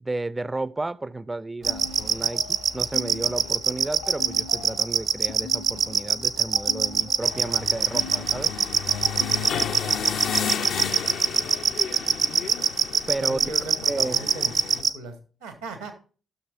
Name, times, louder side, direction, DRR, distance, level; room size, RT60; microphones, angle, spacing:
voice 1, 0.0-8.5 13.1-13.5 13.9-14.3, right 2 dB, 20° right, 0.4 m, -32 dB
sound 1, 1.6-10.4, left 4 dB, 85° left, 2.6 m, -41 dB
sound 2, 1.6-14.9, right 6 dB, 60° right, 0.8 m, -22 dB
sound 3, 7.2-14.8, left 7 dB, 65° left, 0.5 m, -33 dB
voice 2, 9.8-11.5 13.1-15.9, right 3 dB, 90° right, 1.7 m, -39 dB
16.0 x 6.6 x 2.4 m
hypercardioid pair, 40°, 0 cm